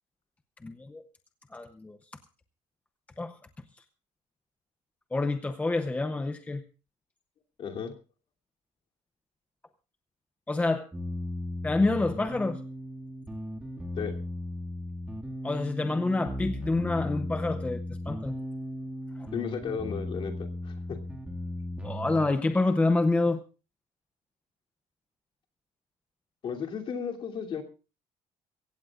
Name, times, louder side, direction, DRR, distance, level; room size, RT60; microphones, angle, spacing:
voice 1, 0.6-1.0 1.5-2.0 3.2-3.4 5.1-6.6 10.5-10.9 11.6-12.6 15.4-18.3 19.2-19.3 21.8-23.4, left 2 dB, 10° left, 8 dB, 0.7 m, -27 dB
voice 2, 7.6-7.9 13.9-14.1 19.3-21.0 26.4-27.6, left 7 dB, 40° left, 2 dB, 2.8 m, -34 dB
sound 1, 10.9-22.3, left 1 dB, 5° right, 2.0 m, -36 dB
23.5 x 16.5 x 2.4 m, 0.33 s
cardioid pair, 175°, 14 cm